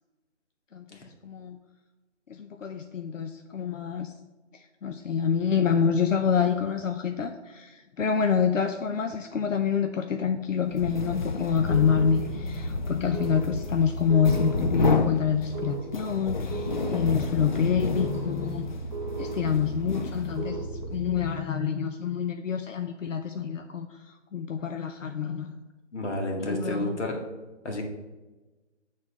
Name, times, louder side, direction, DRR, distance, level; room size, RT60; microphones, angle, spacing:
voice 1, 1.2-1.6 2.3-4.1 4.5-18.7 19.2-25.5 26.4-27.0, left 7 dB, 90° left, 6 dB, 0.8 m, -27 dB
sound 1, 10.7-20.6, left 3 dB, 40° left, 0.4 m, -31 dB
sound 2, 11.6-21.3, right 3 dB, 35° right, 1.1 m, -37 dB
voice 2, 25.9-27.2 27.6-27.8, left 1 dB, 65° left, 2 dB, 2.1 m, -30 dB
7.8 x 4.2 x 6.2 m, 1.2 s
hypercardioid pair, 155°, 37 cm